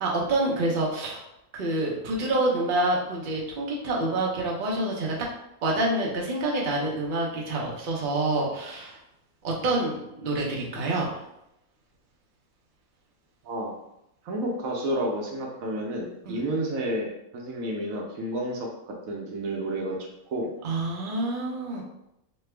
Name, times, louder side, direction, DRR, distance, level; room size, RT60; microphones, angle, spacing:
voice 1, 0.0-1.2 1.5-5.1 5.6-9.0 9.4-11.1 16.4-16.5 20.6-21.8, right 2 dB, 50° right, -3 dB, 0.6 m, -27 dB
voice 2, 14.2-17.1 17.3-18.7 19.1-20.5, right 1 dB, 70° right, -1 dB, 1.0 m, -30 dB
3.2 x 2.2 x 3.2 m, 0.82 s
omnidirectional pair, 1.6 m